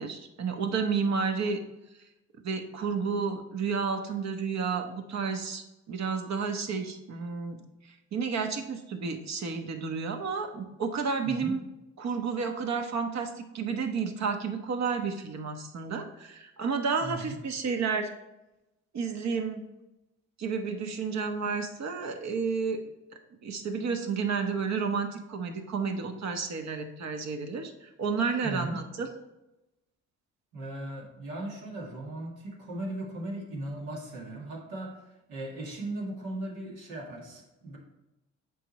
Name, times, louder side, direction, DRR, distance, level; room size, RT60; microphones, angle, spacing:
voice 1, 0.0-1.6 2.4-7.6 8.1-11.6 12.0-18.1 18.9-19.6 20.4-22.8 23.4-29.1, right 5 dB, 60° right, 6 dB, 1.1 m, -31 dB
voice 2, 11.2-11.6 17.0-17.4 28.4-28.8 30.5-37.8, right 1 dB, 90° right, -2 dB, 1.9 m, -38 dB
7.6 x 5.0 x 4.1 m, 0.95 s
supercardioid pair, 65°, 30 cm